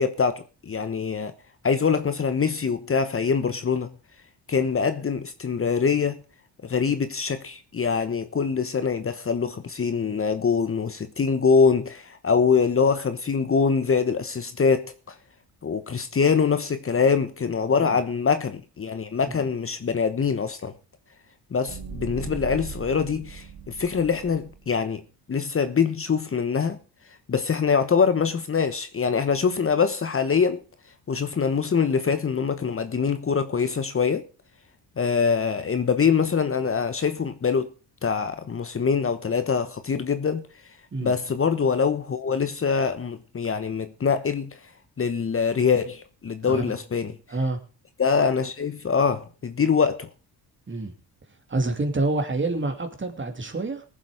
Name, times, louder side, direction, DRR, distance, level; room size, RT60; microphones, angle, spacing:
voice 1, 0.0-1.3 1.6-3.9 4.5-6.2 6.6-15.2 15.6-20.7 21.5-25.0 25.3-26.8 27.3-30.6 31.1-34.2 35.0-37.7 38.0-40.5 41.0-44.6 45.0-47.2 48.0-50.1, left 5 dB, 30° left, 1.2 m, -24 dB
sound 1, 21.7-24.8, right 5 dB, 50° right, 2.1 m, -39 dB
voice 2, 46.4-46.7 47.3-47.6 50.7-50.9 51.5-53.8, right 2 dB, 30° right, 2.7 m, -27 dB
18.5 x 7.5 x 4.9 m
supercardioid pair, 75°, 41 cm